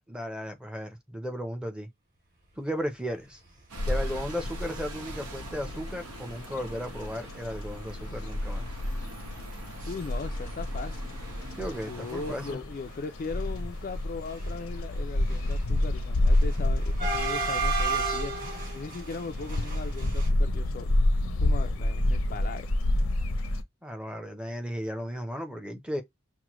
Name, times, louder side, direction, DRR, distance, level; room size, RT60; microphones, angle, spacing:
voice 1, 0.1-1.9 2.6-3.4 3.9-8.7 11.6-12.6 23.8-26.0, equal, 5° right, 0.6 m, -35 dB
Bus, 3.7-12.5, right 2 dB, 90° right, 1.0 m, -45 dB
sound 1, 3.8-23.6, left 1 dB, 75° left, 0.6 m, -29 dB
sound 2, 5.0-5.1 5.3-5.5 6.2-6.3 6.8-7.0 7.2-7.3 7.7-9.9 10.2-10.9 11.2-20.3, right 4 dB, 40° right, 2.1 m, -35 dB
voice 2, 9.9-11.1 11.9-18.3 18.7-20.9 21.4-22.7, left 4 dB, 40° left, 0.3 m, -38 dB
6.0 x 2.1 x 3.0 m
head